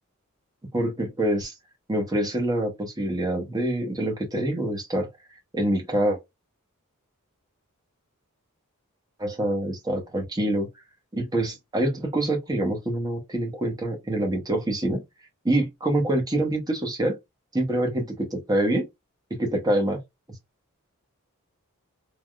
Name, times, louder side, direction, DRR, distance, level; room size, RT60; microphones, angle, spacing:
voice 1, 0.7-1.5 1.9-5.1 5.5-6.2 9.2-10.7 11.1-15.0 15.4-17.2 17.5-18.9 19.3-20.0, right 1 dB, 20° right, 0.9 m, -25 dB
3.4 x 2.2 x 2.3 m
head